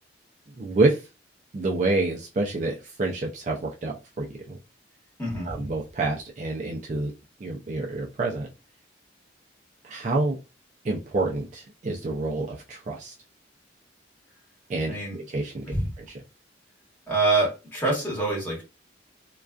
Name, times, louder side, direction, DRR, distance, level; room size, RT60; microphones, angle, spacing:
voice 1, 0.6-1.0 1.5-4.6 5.4-7.1 7.4-8.5 9.8-10.4 10.8-13.1 14.7-16.1, right 2 dB, 40° right, -2 dB, 0.4 m, -28 dB
voice 2, 5.2-5.6 14.9-15.2 15.6-15.9 17.1-18.6, right 2 dB, 10° left, -5 dB, 1.1 m, -25 dB
2.3 x 2.3 x 2.4 m, 0.28 s
head